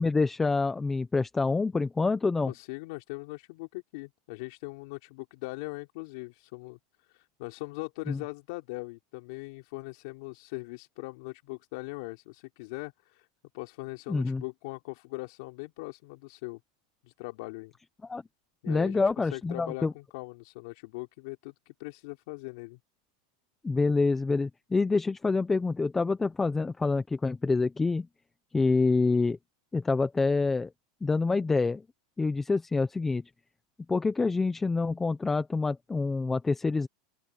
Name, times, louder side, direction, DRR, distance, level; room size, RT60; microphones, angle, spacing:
voice 1, 0.0-2.5 8.1-8.2 14.1-14.4 18.1-18.2 18.7-19.9 23.6-28.1 28.5-29.4 29.7-30.7 31.0-31.8 32.2-33.2 33.9-36.9, left 3 dB, 10° left, 0.9 m, -26 dB
voice 2, 2.5-13.3 13.5-16.6 17.0-17.7 18.6-19.0 19.3-22.8, left 25 dB, 60° left, 3.6 m, -40 dB
open air
supercardioid pair, 140°, 3 cm